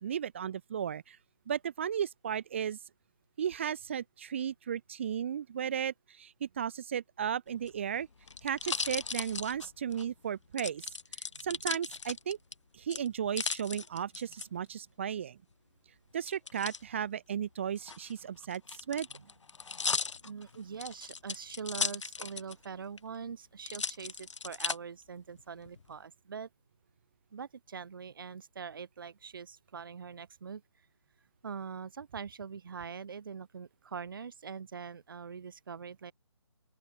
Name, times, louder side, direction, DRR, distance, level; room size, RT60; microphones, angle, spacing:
voice 1, 0.0-1.2 1.5-2.8 3.4-8.1 8.4-10.9 11.2-12.4 12.7-15.4 16.1-19.1, right 8 dB, 25° right, 1.1 m, -35 dB
sound 1, 7.5-10.0 10.6-12.5 12.9-14.4 16.3-16.8 17.7-22.6 23.0-23.1 23.6-24.8 25.4-25.9, left 5 dB, 70° left, 1.4 m, -37 dB
voice 2, 20.2-26.5 27.3-30.6 31.4-36.1, right 6 dB, 45° right, 2.0 m, -43 dB
open air
hypercardioid pair, 175°, 16 cm